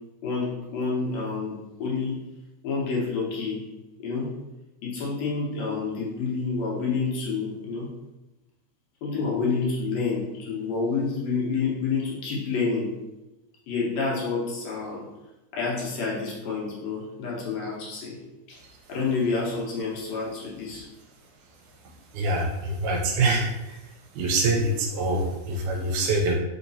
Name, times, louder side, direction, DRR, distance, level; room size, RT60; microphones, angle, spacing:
voice 1, 0.2-2.2 2.6-3.6 4.0-4.3 4.8-7.9 9.0-12.9 13.7-15.0 15.5-18.2 18.5-18.6 18.9-20.9, left 4 dB, 70° left, -4 dB, 1.9 m, -28 dB
voice 2, 22.1-23.8 24.1-26.3, right 2 dB, 80° right, 0 dB, 2.0 m, -25 dB
4.9 x 2.8 x 2.7 m, 1.0 s
omnidirectional pair, 3.6 m